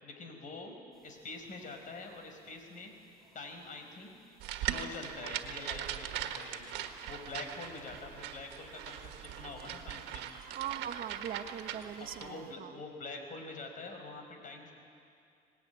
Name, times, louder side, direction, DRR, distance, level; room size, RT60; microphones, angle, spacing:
voice 1, 0.0-0.7 1.0-2.9 3.3-4.1 4.5-6.7 7.1-10.2 12.0-14.7, left 3 dB, 50° left, 4 dB, 5.3 m, -45 dB
sound 1, 0.9-12.5, equal, ahead, 7.4 m, -61 dB
sound 2, 4.4-12.3, right 11 dB, 90° right, 1.6 m, -40 dB
voice 2, 10.5-12.7, right 9 dB, 60° right, 8 dB, 1.2 m, -41 dB
24.5 x 19.5 x 9.5 m, 2.4 s
cardioid pair, 110°, 17 cm